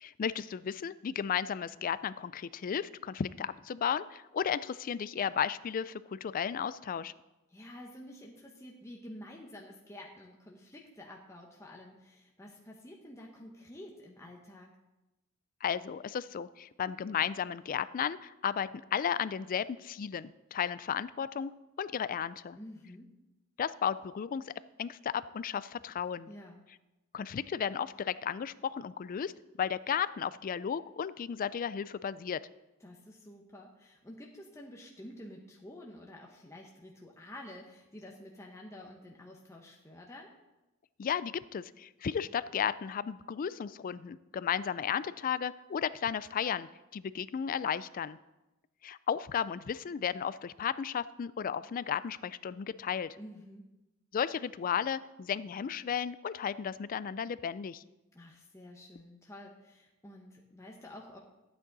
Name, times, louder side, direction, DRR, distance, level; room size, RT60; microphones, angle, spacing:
voice 1, 0.0-7.1 15.6-21.5 21.8-22.6 23.6-24.5 24.8-26.3 27.1-29.3 29.6-32.4 41.0-48.2 48.8-53.2 54.1-57.8, left 8 dB, 40° left, 17 dB, 0.3 m, -34 dB
voice 2, 7.5-14.7 22.6-23.1 26.3-26.6 32.8-40.3 53.1-53.6 58.1-61.2, left 1 dB, 15° left, -1 dB, 0.9 m, -49 dB
12.5 x 8.6 x 4.0 m, 1.0 s
head